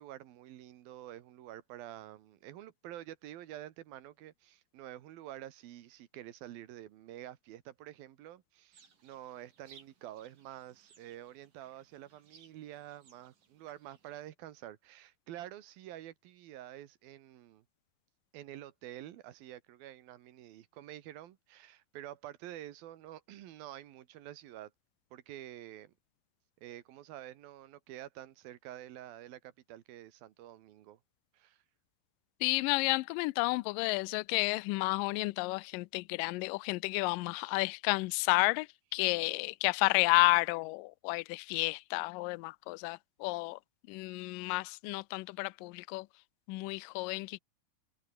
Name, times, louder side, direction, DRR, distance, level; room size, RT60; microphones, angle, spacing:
voice 1, 0.0-17.6 18.3-24.7 25.1-25.9 26.6-31.0 31.3-31.6, right 13 dB, 75° right, 3.1 m, -48 dB
sound 1, 8.7-14.3, right 6 dB, 60° right, 5.4 m, -63 dB
voice 2, 32.4-38.7 38.9-43.6 43.9-46.1 46.5-47.4, left 24 dB, 80° left, 2.1 m, -31 dB
omnidirectional pair, 4.3 m